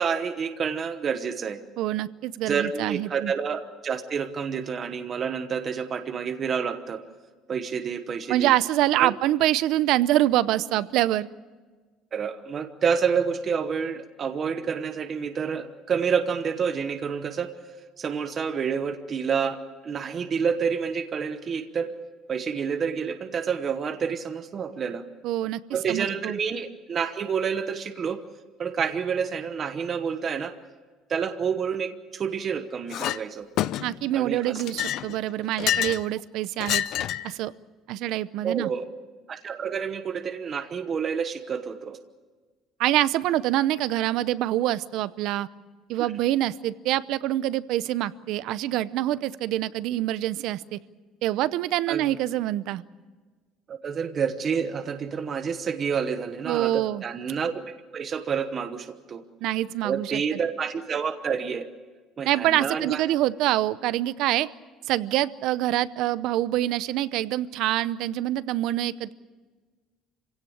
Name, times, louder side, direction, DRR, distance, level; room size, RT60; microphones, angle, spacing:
voice 1, 0.0-1.6 2.5-7.0 7.5-8.5 9.0-9.1 12.1-17.5 18.0-21.9 22.3-25.0 25.7-28.2 28.6-30.6 31.1-33.5 34.1-34.6 38.4-38.8 39.3-42.0 46.0-46.1 51.9-52.1 53.7-57.6 57.9-59.2 59.8-61.7 62.2-63.0, right 6 dB, 30° right, 8 dB, 1.1 m, -28 dB
voice 2, 1.8-3.3 8.3-11.3 25.2-25.6 25.9-26.4 33.8-36.8 37.2-37.5 37.9-38.7 42.8-45.5 45.9-50.8 51.2-52.8 56.5-57.0 59.4-60.2 62.3-64.5 64.9-69.1, right 14 dB, 60° right, 16 dB, 0.7 m, -25 dB
Chink clink, 32.9-33.2 33.6-34.1 34.6-36.1 36.6-37.3, left 12 dB, 55° left, 0.6 m, -27 dB
26.5 x 17.0 x 8.7 m, 1.4 s
cardioid pair, 165°, 0 cm